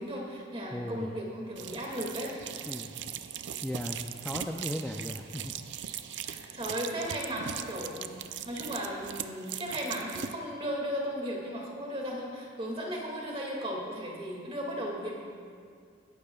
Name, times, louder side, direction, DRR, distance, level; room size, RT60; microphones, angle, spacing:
voice 1, 0.0-2.4 6.2-15.1, equal, 30° right, -2 dB, 2.1 m, -36 dB
voice 2, 0.7-1.2 2.7-2.9 3.6-5.5, left 1 dB, 5° left, 2 dB, 0.4 m, -37 dB
sound 1, 1.6-10.4, right 9 dB, 65° right, 0.4 m, -40 dB
22.0 x 11.5 x 2.3 m, 2.2 s
head